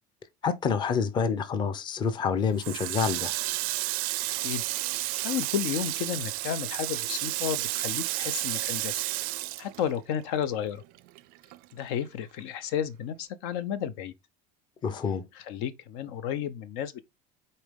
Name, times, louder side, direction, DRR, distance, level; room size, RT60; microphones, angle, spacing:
voice 1, 0.4-3.3 14.8-15.2, left 6 dB, 25° left, 0.7 m, -27 dB
Water tap faucet, 2.6-10.4 10.7-12.1, right 20 dB, 55° right, 0.5 m, -32 dB
voice 2, 5.2-9.0 9.6-10.8 11.7-14.1 15.3-17.0, left 9 dB, 70° left, 0.8 m, -32 dB
6.6 x 4.2 x 3.6 m
cardioid pair, 160°, 18 cm